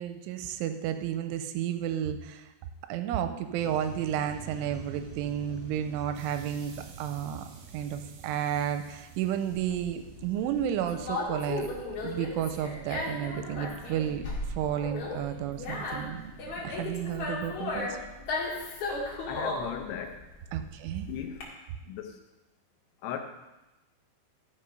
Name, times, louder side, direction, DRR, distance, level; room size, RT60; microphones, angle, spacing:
voice 1, 0.0-2.5 2.9-7.5 7.7-11.7 12.0-14.2 14.5-16.2 16.6-17.9 20.5-21.1, right 10 dB, 85° right, 9 dB, 3.1 m, -32 dB
sound 1, 3.6-17.1, right 6 dB, 65° right, 2.3 m, -48 dB
Conversation, 9.5-21.4, left 2 dB, 50° left, 2.7 m, -35 dB
voice 2, 19.3-20.2 21.1-21.5 21.9-22.2 23.0-23.2, left 8 dB, 75° left, 4 dB, 2.8 m, -37 dB
13.5 x 5.9 x 5.3 m, 1.0 s
omnidirectional pair, 5.6 m